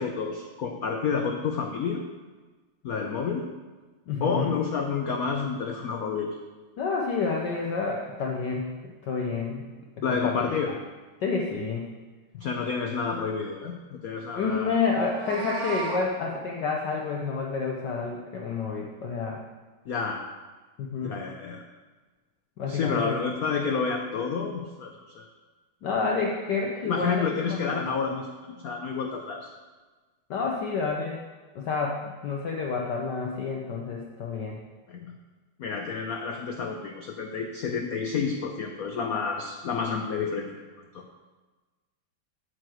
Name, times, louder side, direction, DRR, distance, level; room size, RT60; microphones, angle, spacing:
voice 1, 0.0-2.0 2.8-3.5 4.2-6.4 10.0-10.7 12.3-14.8 19.9-20.2 21.0-21.6 22.7-25.3 26.8-29.5 34.9-35.2 35.6-41.0, left 5 dB, 85° left, 3 dB, 0.7 m, -30 dB
voice 2, 4.1-4.6 6.8-9.7 10.1-10.3 11.2-11.9 14.3-19.4 20.8-21.2 22.6-23.2 25.8-28.0 30.3-31.2 31.5-34.6, left 4 dB, 65° left, 0 dB, 1.2 m, -29 dB
Meow, 14.9-16.0, right 2 dB, 65° right, 2.0 m, -34 dB
9.1 x 4.8 x 7.6 m, 1.3 s
omnidirectional pair, 2.4 m